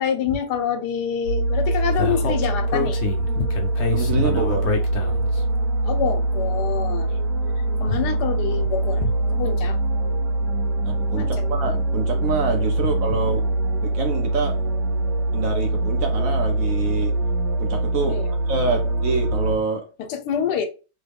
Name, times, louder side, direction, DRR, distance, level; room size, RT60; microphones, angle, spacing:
voice 1, 0.0-3.0 3.4-3.5 4.1-4.2 5.8-7.1 7.8-9.8 11.1-11.3 12.8-12.9 18.1-18.3 18.7-18.8 20.0-20.7, left 7 dB, 80° left, 1.2 m, -26 dB
sound 1, 1.3-19.6, right 2 dB, 85° right, 1.4 m, -23 dB
Speech, 2.0-5.4, left 4 dB, 55° left, 0.8 m, -27 dB
voice 2, 3.9-4.7 10.8-13.5 13.8-14.6 15.3-17.1 17.6-19.9, right 4 dB, 60° right, 1.0 m, -27 dB
3.2 x 2.2 x 3.4 m
omnidirectional pair, 1.8 m